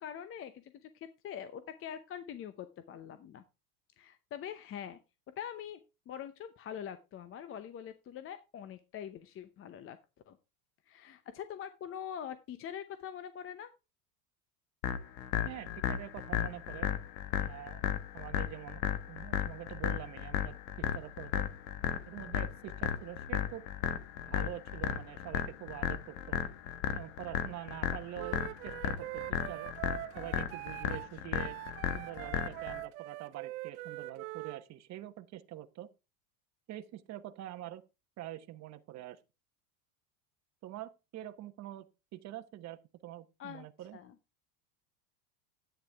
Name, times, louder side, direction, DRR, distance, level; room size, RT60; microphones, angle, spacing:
voice 1, 0.0-3.4 4.0-5.0 5.4-5.8 6.1-10.0 10.3-10.4 10.9-13.7 43.4-43.6 43.9-44.1, left 9 dB, 30° left, 0.7 m, -44 dB
sound 1, 14.8-32.8, left 10 dB, 65° left, 1.5 m, -35 dB
voice 2, 15.4-16.9 17.4-17.8 18.1-21.4 22.1-23.7 24.3-26.4 26.9-29.7 30.1-31.6 31.9-35.9 36.7-37.8 38.2-39.2 40.6-41.9 42.1-44.0, right 13 dB, 35° right, 1.0 m, -45 dB
Wind instrument woodwind instrument, 28.2-34.6, right 18 dB, 70° right, 0.8 m, -43 dB
10.5 x 9.1 x 3.4 m
supercardioid pair, 120°, 44 cm